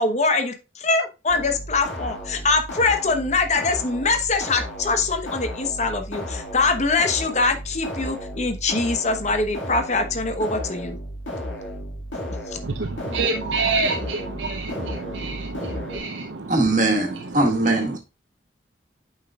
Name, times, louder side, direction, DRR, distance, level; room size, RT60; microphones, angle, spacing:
voice 1, 0.0-11.0 12.5-12.6, left 3 dB, 35° left, 0.9 m, -23 dB
sound 1, 1.3-16.0, equal, 85° left, 1.9 m, -34 dB
voice 2, 12.6-16.5, right 3 dB, 70° right, 0.6 m, -27 dB
voice 3, 16.5-18.0, right 2 dB, 40° right, 1.9 m, -21 dB
8.2 x 5.7 x 2.3 m
head